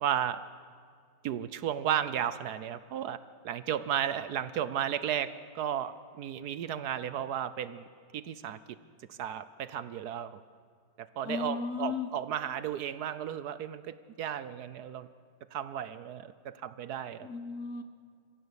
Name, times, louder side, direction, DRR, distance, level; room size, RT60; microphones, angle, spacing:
voice 1, 0.0-0.4 1.2-3.2 3.4-7.8 8.1-8.6 9.1-10.4 11.0-15.1 15.5-17.3, right 9 dB, 65° right, 15 dB, 1.1 m, -34 dB
voice 2, 11.2-12.1 17.2-17.8, left 5 dB, 50° left, 10 dB, 1.4 m, -35 dB
25.5 x 15.5 x 8.1 m, 2.1 s
omnidirectional pair, 2.0 m